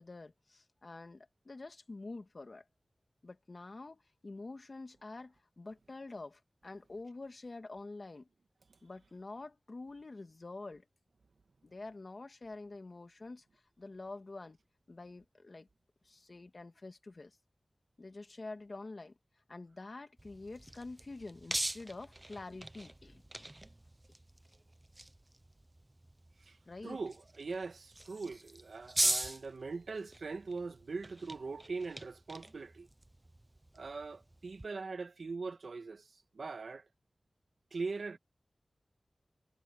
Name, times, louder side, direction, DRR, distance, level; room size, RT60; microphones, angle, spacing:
voice 1, 0.0-2.7 3.2-8.3 8.8-10.9 11.6-13.4 13.8-14.6 14.9-15.7 16.0-17.4 18.0-19.2 19.5-23.5 26.7-27.0, left 3 dB, 50° left, 2.0 m, -47 dB
sound 1, 20.2-34.7, right 1 dB, 20° right, 0.9 m, -41 dB
voice 2, 26.8-32.9 33.7-36.8 37.7-38.2, right 4 dB, 85° right, 1.8 m, -41 dB
wide cardioid pair, 75°, 0 cm